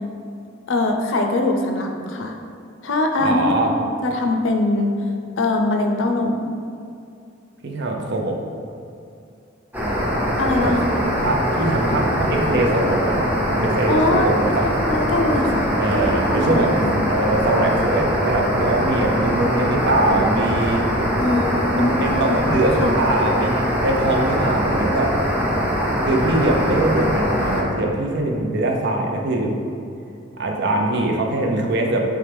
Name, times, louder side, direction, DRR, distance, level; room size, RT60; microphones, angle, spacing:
voice 1, 0.7-2.3 2.8-3.5 3.8-5.0 5.4-6.5 10.4-11.0 13.9-14.3 14.6-17.1 21.2-22.4 22.8-22.9, left 2 dB, 85° left, 3 dB, 0.5 m, -22 dB
voice 2, 3.2-3.7 7.6-8.4 10.6-10.7 11.0-14.6 15.7-16.8 17.0-20.8 21.7-25.2 26.0-29.5 30.4-32.0, right 2 dB, 60° right, 2 dB, 0.6 m, -22 dB
sound 1, 9.7-27.6, equal, 10° right, 0.7 m, -22 dB
4.6 x 3.3 x 3.4 m, 2.5 s
head